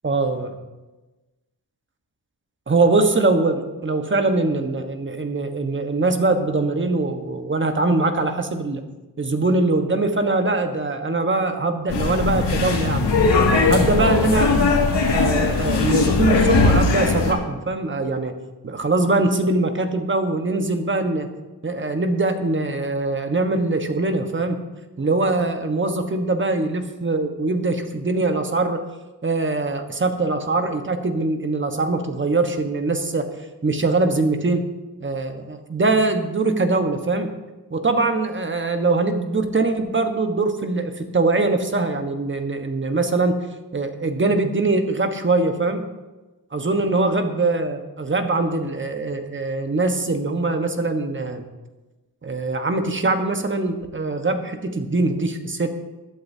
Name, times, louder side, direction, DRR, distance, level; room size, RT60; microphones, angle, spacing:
voice 1, 0.0-0.5 2.7-8.8 9.2-13.1 13.6-14.5 15.1-18.3 18.6-21.3 21.6-24.6 25.0-28.8 29.2-33.3 33.6-34.7 35.0-37.3 37.7-43.4 43.7-45.8 46.5-51.4 52.2-55.7, right 3 dB, 30° right, 6 dB, 1.3 m, -22 dB
sound 1, 11.9-17.3, left 4 dB, 85° left, 2.3 m, -19 dB
21.5 x 11.5 x 2.8 m, 1.1 s
wide cardioid pair, 125°, 41 cm